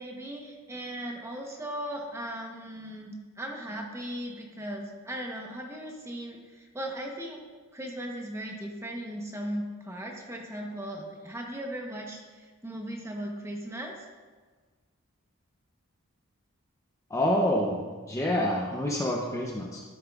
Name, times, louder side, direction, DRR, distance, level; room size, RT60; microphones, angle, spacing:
voice 1, 0.0-7.4 7.7-14.0, right 1 dB, 10° right, 1 dB, 0.9 m, -37 dB
voice 2, 17.1-17.8 18.1-19.8, left 1 dB, 15° left, -1 dB, 0.6 m, -27 dB
12.5 x 7.2 x 2.4 m, 1.5 s
head